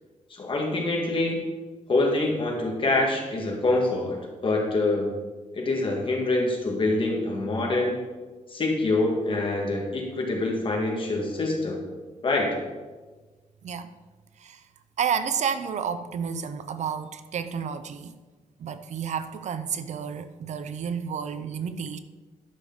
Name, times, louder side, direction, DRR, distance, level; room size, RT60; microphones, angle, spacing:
voice 1, 0.3-1.6 1.9-5.1 5.5-8.0 8.5-11.8 12.2-12.6, left 2 dB, 40° left, 0 dB, 1.9 m, -25 dB
voice 2, 15.0-18.1 18.6-22.0, right 7 dB, 65° right, 11 dB, 0.5 m, -31 dB
11.0 x 6.4 x 3.9 m, 1.3 s
wide cardioid pair, 140°, 13 cm